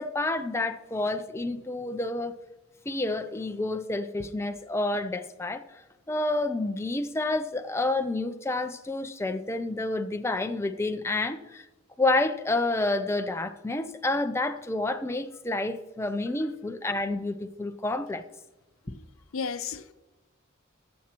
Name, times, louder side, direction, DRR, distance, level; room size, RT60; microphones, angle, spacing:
voice 1, 0.0-2.3 2.9-5.6 6.1-11.6 12.0-18.2, left 2 dB, 15° left, 0.4 m, -29 dB
voice 2, 19.3-19.9, left 5 dB, 80° left, 0.6 m, -34 dB
18.5 x 7.3 x 2.9 m
head